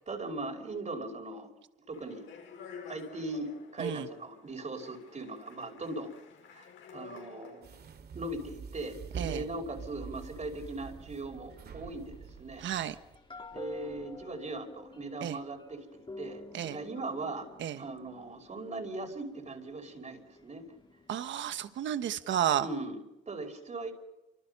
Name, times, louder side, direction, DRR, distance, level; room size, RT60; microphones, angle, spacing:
voice 1, 0.0-1.5 1.9-2.3 2.9-6.2 6.5-7.8 8.1-12.6 13.5-17.5 17.8-20.6 22.6-23.0 23.3-23.9, right 2 dB, 35° right, 2 dB, 5.4 m, -39 dB
Speech, 1.9-7.7, left 6 dB, 75° left, 6.2 m, -50 dB
sound 1, 7.6-13.2, right 5 dB, 55° right, 2.4 m, -45 dB
sound 2, 9.1-22.0, left 3 dB, 25° left, 3.8 m, -51 dB
voice 2, 12.6-12.9 15.2-15.4 16.5-16.8 17.6-17.8 21.1-22.7, right 10 dB, 70° right, 10 dB, 1.3 m, -32 dB
29.0 x 25.5 x 5.6 m, 0.92 s
cardioid pair, 90°, 20 cm